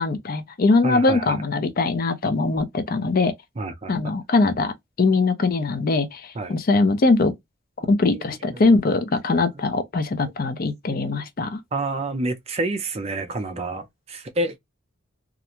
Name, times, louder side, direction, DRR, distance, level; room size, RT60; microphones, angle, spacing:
voice 1, 0.0-3.3 3.9-6.2 6.5-7.3 7.9-11.6, left 3 dB, 45° left, 0.5 m, -21 dB
voice 2, 0.8-1.3 3.6-4.0 6.4-6.6 7.8-8.2 8.5-8.6 10.2-10.3 10.9-11.2 11.7-14.6, right 2 dB, 30° right, 0.5 m, -29 dB
2.4 x 2.1 x 2.8 m
head